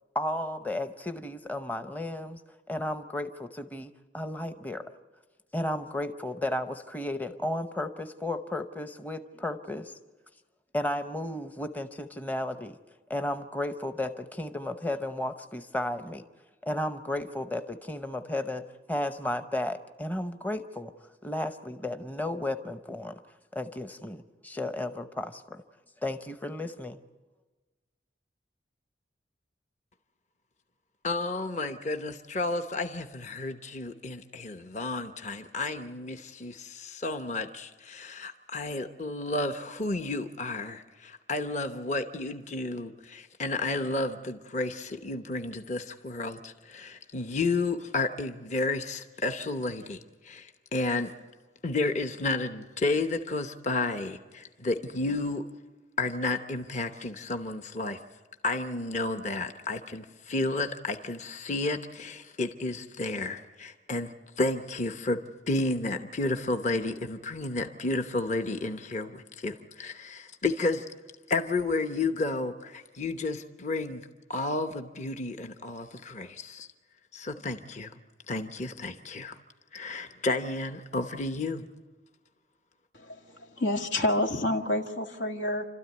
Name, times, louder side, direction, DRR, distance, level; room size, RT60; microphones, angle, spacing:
voice 1, 0.1-2.4 2.7-4.9 5.5-9.9 10.7-12.8 13.1-16.2 16.6-20.9 21.2-23.2 23.5-25.6 26.0-27.0, left 1 dB, 10° left, 9 dB, 0.7 m, -33 dB
voice 2, 31.0-51.1 51.6-55.4 56.0-58.0 58.4-65.2 65.5-70.9 71.3-76.7 77.1-77.9 78.3-79.4 79.7-81.7, left 2 dB, 40° left, 7 dB, 0.9 m, -32 dB
voice 3, 82.9-85.7, left 1 dB, 85° left, 4 dB, 2.0 m, -29 dB
29.0 x 13.0 x 9.4 m, 1.3 s
head